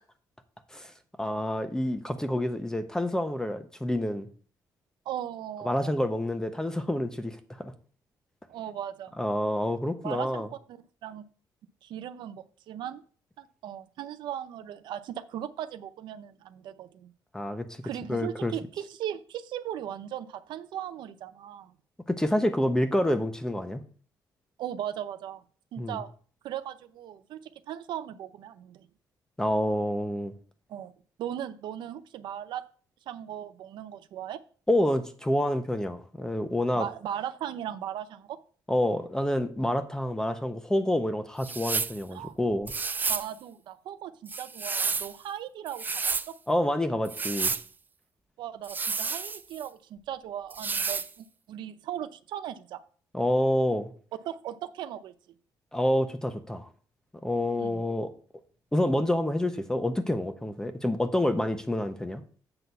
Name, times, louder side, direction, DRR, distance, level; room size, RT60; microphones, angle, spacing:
voice 1, 1.2-4.3 5.6-7.7 9.2-10.5 17.3-17.7 18.1-18.5 22.1-23.8 25.8-26.0 29.4-30.3 34.7-36.9 38.7-42.7 46.5-47.5 53.1-53.9 55.7-56.7 57.2-58.1 58.7-62.2, left 1 dB, 10° left, 8 dB, 1.0 m, -28 dB
voice 2, 5.1-5.9 8.5-9.1 10.0-11.2 11.8-13.0 13.4-17.1 17.8-21.7 24.6-25.4 25.7-26.1 26.4-27.4 27.7-28.9 30.7-30.9 31.2-32.6 33.1-34.4 36.7-38.4 42.1-42.4 43.1-46.0 48.4-52.8 54.2-55.1 57.6-57.8, right 10 dB, 80° right, 11 dB, 0.6 m, -38 dB
sound 1, 41.4-42.0 42.7-43.3 44.3-45.1 45.7-46.3 47.0-47.6 48.6-49.7 50.5-51.1, right 4 dB, 25° right, 0.4 m, -30 dB
7.9 x 3.9 x 6.9 m, 0.43 s
cardioid pair, 110°, 8 cm